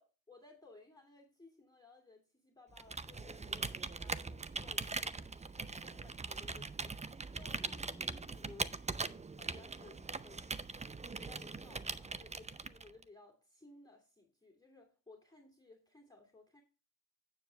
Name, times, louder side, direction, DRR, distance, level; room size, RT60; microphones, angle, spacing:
voice 1, 0.0-5.1 5.5-8.8 9.4-10.4 11.2-16.6, left 3 dB, 10° left, 0 dB, 2.5 m, -59 dB
Computer keyboard, 2.7-13.0, right 4 dB, 15° right, 0.6 m, -41 dB
8.7 x 7.4 x 3.4 m, 0.35 s
hypercardioid pair, 45°, 47 cm